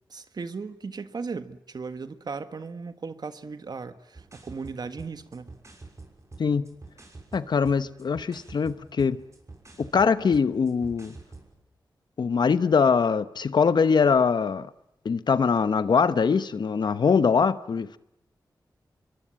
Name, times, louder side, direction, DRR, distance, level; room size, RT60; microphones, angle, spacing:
voice 1, 0.1-5.6, right 4 dB, 60° right, 1.5 m, -37 dB
sound 1, 4.1-11.5, right 3 dB, 40° right, 6.0 m, -48 dB
voice 2, 6.4-6.7 7.3-9.2 9.8-11.1 12.2-14.7 15.0-18.0, left 5 dB, 70° left, 1.0 m, -22 dB
25.5 x 23.0 x 8.8 m
cardioid pair, 60°, 8 cm